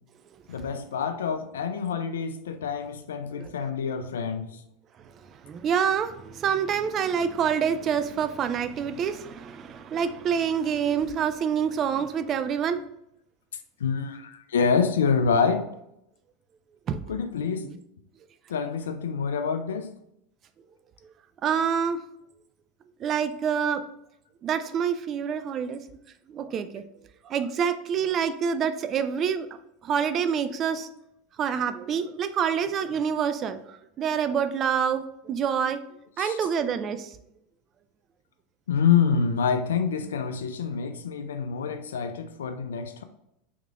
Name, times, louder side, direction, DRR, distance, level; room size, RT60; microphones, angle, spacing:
voice 1, 0.5-4.6 13.8-15.7 17.1-17.7 18.5-19.9 36.2-36.4 38.7-43.0, left 6 dB, 80° left, 9 dB, 0.4 m, -26 dB
voice 2, 5.4-12.8 16.9-17.0 17.6-17.8 21.4-22.0 23.0-23.8 24.4-25.8 26.3-26.8 27.3-29.5 29.8-30.9 31.4-33.6 34.0-35.8 36.2-37.1, right 7 dB, 40° right, 11 dB, 0.3 m, -27 dB
3.6 x 3.2 x 2.3 m, 0.81 s
hypercardioid pair, 90°, 0 cm